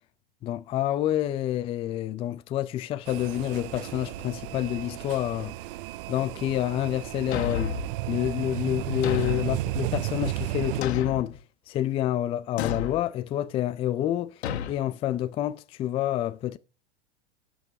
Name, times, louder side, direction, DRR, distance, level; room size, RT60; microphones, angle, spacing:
voice 1, 0.4-5.5 6.1-7.8 8.1-11.4 11.7-16.6, left 12 dB, 20° left, 0.3 m, -28 dB
sound 1, 3.1-10.8, right 17 dB, 55° right, 0.5 m, -33 dB
Thump thud, 7.3-7.9 9.0-9.6 10.8-11.4 12.6-13.0 14.4-14.8, left 8 dB, 75° left, 1.2 m, -30 dB
16.5 x 6.3 x 2.8 m
hypercardioid pair, 125°, 33 cm